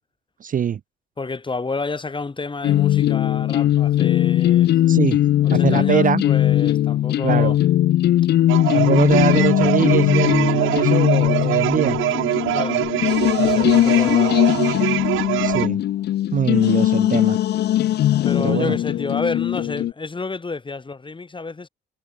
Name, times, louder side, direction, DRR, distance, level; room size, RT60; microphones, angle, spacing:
voice 1, 0.4-0.8 4.9-5.2 5.5-6.2 7.2-7.5 8.7-12.0 15.4-15.8 16.3-17.4 18.4-18.8, right 8 dB, 45° right, 0.6 m, -22 dB
voice 2, 1.2-4.7 5.4-7.6 12.5-12.8 13.4-14.4 18.2-21.7, left 3 dB, 25° left, 3.5 m, -29 dB
sound 1, 2.6-19.9, left 12 dB, 60° left, 0.4 m, -19 dB
sound 2, 8.5-15.7, right 16 dB, 85° right, 1.1 m, -23 dB
cardioid pair, 90°, 20 cm